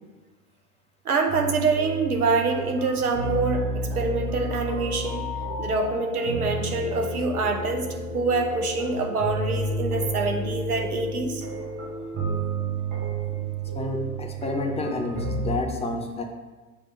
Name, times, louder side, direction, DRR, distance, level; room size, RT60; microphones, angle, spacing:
voice 1, 1.0-5.3 5.6-11.4, right 3 dB, 85° right, 4 dB, 0.9 m, -25 dB
sound 1, 1.3-15.5, right 2 dB, 65° right, 2.0 m, -31 dB
voice 2, 13.7-16.2, left 2 dB, 15° left, 3 dB, 0.6 m, -29 dB
6.9 x 3.2 x 5.7 m, 1.2 s
figure-of-eight pair, 85°, 43 cm